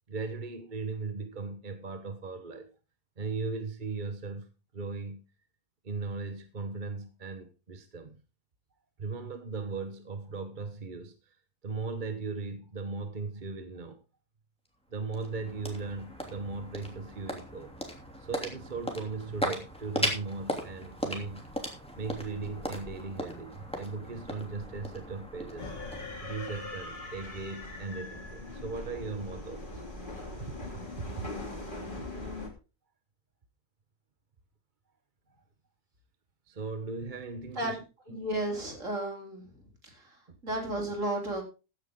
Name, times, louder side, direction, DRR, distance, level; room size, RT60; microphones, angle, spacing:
voice 1, 0.1-2.7 3.2-5.3 5.8-8.2 9.0-11.4 11.6-14.0 14.9-17.7 18.2-21.5 21.9-25.7 26.2-29.8 30.4-31.3 36.5-37.8 38.1-38.3 40.3-40.4, right 4 dB, 35° right, 1.2 m, -38 dB
sound 1, 14.7-27.1, equal, 5° left, 2.9 m, -38 dB
sound 2, 25.6-32.5, left 2 dB, 35° left, 3.1 m, -41 dB
voice 2, 38.1-39.5 39.8-41.4, right 1 dB, 65° right, 4.2 m, -33 dB
15.5 x 9.7 x 3.7 m
omnidirectional pair, 1.5 m